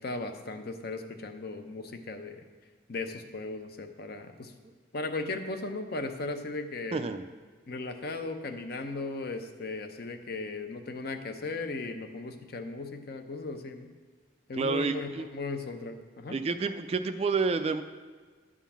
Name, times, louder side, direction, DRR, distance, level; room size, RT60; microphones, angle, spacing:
voice 1, 0.0-2.4 2.9-4.5 4.9-7.1 7.7-13.9 14.5-16.4, left 3 dB, 50° left, 6 dB, 0.7 m, -37 dB
voice 2, 6.9-7.2 14.6-15.3 16.3-17.8, right 4 dB, 30° right, 9 dB, 0.3 m, -29 dB
11.0 x 3.7 x 7.2 m, 1.5 s
head